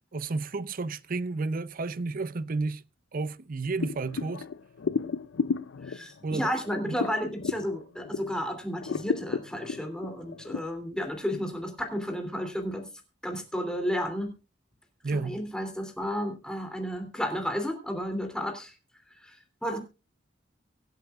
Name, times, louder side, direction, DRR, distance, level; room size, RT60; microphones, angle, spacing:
voice 1, 0.1-2.8 3.1-4.5 6.2-6.5 6.9-7.0 15.0-15.4, right 3 dB, 45° right, 0.6 m, -31 dB
sound 1, 3.8-8.4 8.8-10.6, left 5 dB, 80° left, 0.5 m, -33 dB
voice 2, 5.8-12.9 13.2-14.3 15.1-18.7 19.2-19.8, equal, 5° left, 2.9 m, -32 dB
24.5 x 8.3 x 2.4 m
head